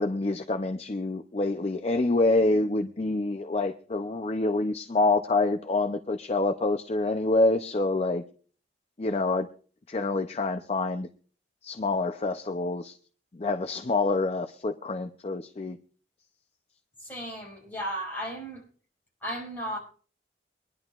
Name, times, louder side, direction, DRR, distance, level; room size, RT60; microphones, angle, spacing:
voice 1, 0.0-8.2 9.0-9.5 9.9-11.1 11.6-13.0 13.3-15.8, left 2 dB, 35° left, 8 dB, 0.5 m, -26 dB
voice 2, 17.0-18.6 19.2-19.8, equal, 10° left, -3 dB, 5.1 m, -35 dB
24.0 x 11.0 x 2.4 m, 0.41 s
head